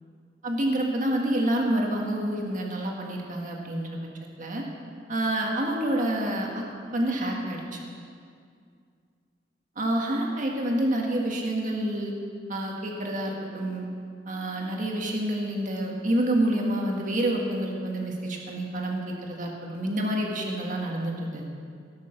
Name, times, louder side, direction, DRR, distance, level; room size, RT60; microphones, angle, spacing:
voice 1, 0.4-3.9 4.4-4.6 5.1-6.6 6.9-7.8 9.7-12.1 12.5-13.9 14.2-21.5, right 1 dB, 45° right, 0 dB, 1.7 m, -28 dB
18.0 x 6.7 x 6.5 m, 2.3 s
head